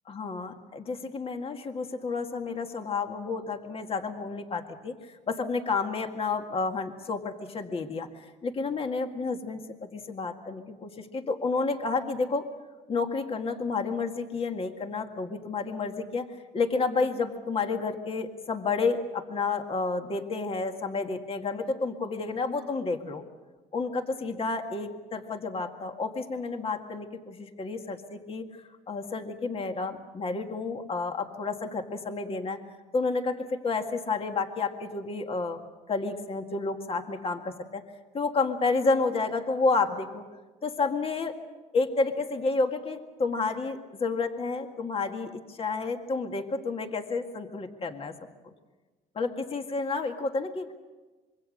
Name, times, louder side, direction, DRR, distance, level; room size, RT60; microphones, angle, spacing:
voice 1, 0.1-12.5 12.9-16.3 16.5-23.2 23.7-28.5 28.9-32.6 32.9-35.6 35.9-37.8 38.1-40.3 40.6-41.4 41.7-48.2 49.2-50.7, left 4 dB, 35° left, 5 dB, 1.9 m, -30 dB
25.5 x 23.0 x 6.5 m, 1.2 s
cardioid pair, 110°, 17 cm